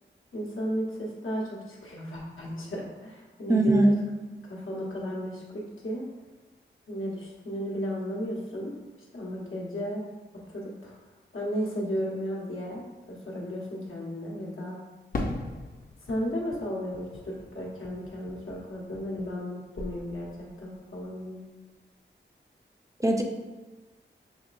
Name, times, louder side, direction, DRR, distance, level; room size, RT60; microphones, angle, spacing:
voice 1, 0.3-3.8 4.4-6.1 6.9-8.7 9.1-10.1 10.3-11.0 11.3-14.8 16.0-21.4, equal, 85° left, -4 dB, 1.2 m, -34 dB
voice 2, 3.5-3.9 23.0-23.2, right 2 dB, 15° right, 1 dB, 0.5 m, -20 dB
Fireworks, 15.1-19.5 19.8-20.6, left 2 dB, 45° left, 0.6 m, -39 dB
6.1 x 3.1 x 2.5 m, 1.2 s
wide cardioid pair, 80°, 20 cm